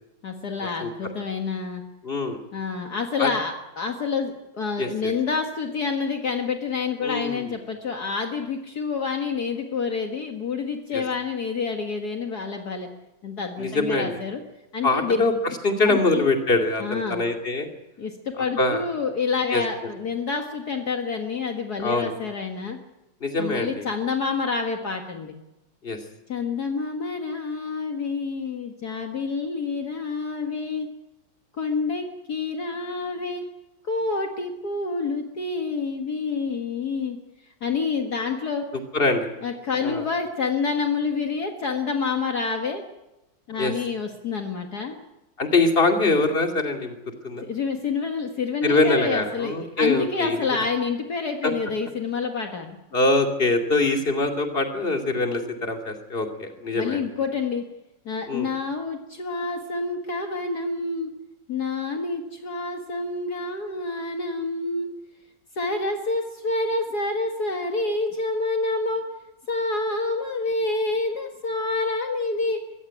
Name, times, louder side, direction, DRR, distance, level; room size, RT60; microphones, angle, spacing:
voice 1, 0.2-1.8 2.5-12.9 13.2-14.4 14.7-15.2 15.9-16.3 16.8-17.2 18.0-22.8 23.4-25.4 26.3-30.9 31.6-33.4 33.8-37.2 37.6-38.7 39.4-42.8 43.5-45.0 47.4-52.8 56.7-57.7 58.1-61.1 61.5-64.9 65.6-69.1 69.5-72.6, left 4 dB, 55° left, 3 dB, 2.2 m, -28 dB
voice 2, 2.0-2.4 3.2-3.3 4.8-5.1 7.0-7.5 10.9-11.0 13.6-14.1 14.8-15.3 15.6-17.7 18.6-18.8 19.5-19.6 21.8-22.1 23.2-23.8 25.8-26.0 38.9-39.3 39.8-40.0 43.6-43.7 45.4-47.0 47.2-47.4 48.6-50.4 51.4-51.5 52.9-57.0 58.3-58.5, left 2 dB, 30° left, 4 dB, 2.7 m, -23 dB
23.0 x 15.5 x 9.9 m, 0.96 s
omnidirectional pair, 2.0 m